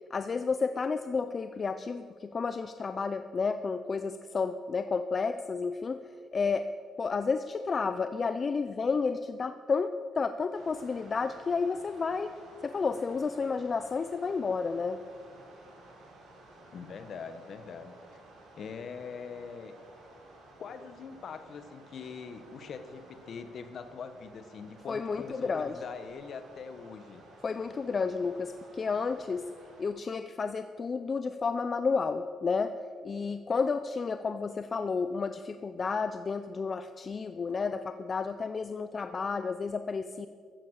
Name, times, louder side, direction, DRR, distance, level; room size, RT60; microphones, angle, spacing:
voice 1, 0.1-6.0 6.3-6.7 7.0-12.3 12.6-15.0 24.9-25.8 27.4-29.4 29.8-32.7 33.0-40.3, left 5 dB, 40° left, 10 dB, 0.6 m, -31 dB
sound 1, 10.5-29.9, right 2 dB, 90° right, 5.7 m, -54 dB
voice 2, 16.7-18.0 18.6-19.8 20.6-27.2, left 5 dB, 60° left, 10 dB, 1.4 m, -43 dB
15.5 x 14.0 x 6.6 m, 2.2 s
cardioid pair, 90°, 0 cm